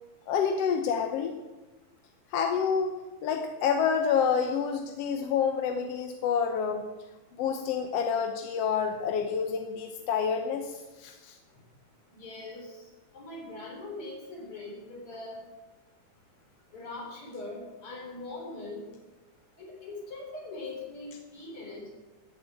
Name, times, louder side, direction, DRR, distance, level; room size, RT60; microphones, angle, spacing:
voice 1, 0.3-1.3 2.3-6.9 7.4-11.4, left 6 dB, 65° left, 5 dB, 1.7 m, -28 dB
voice 2, 12.2-12.8 13.1-15.4 16.7-18.8 19.6-21.9, left 2 dB, 45° left, -1 dB, 4.7 m, -41 dB
14.5 x 8.0 x 8.3 m, 1.1 s
omnidirectional pair, 3.4 m